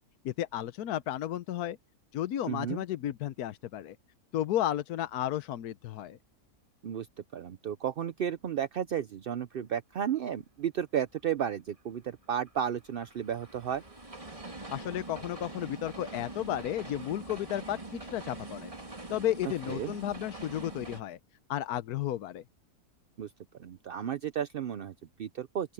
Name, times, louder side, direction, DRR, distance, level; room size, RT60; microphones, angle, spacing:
voice 1, 0.2-1.8 2.1-4.0 4.3-6.2 14.7-18.7 19.1-21.2 21.5-22.4, left 12 dB, 80° left, 1.3 m, -33 dB
voice 2, 2.5-2.8 6.8-7.1 7.3-13.8 19.7-19.9 23.2-23.3 23.6-25.7, right 9 dB, 60° right, 0.6 m, -33 dB
sound 1, 11.7-21.0, right 2 dB, 20° right, 2.7 m, -44 dB
open air
omnidirectional pair, 1.6 m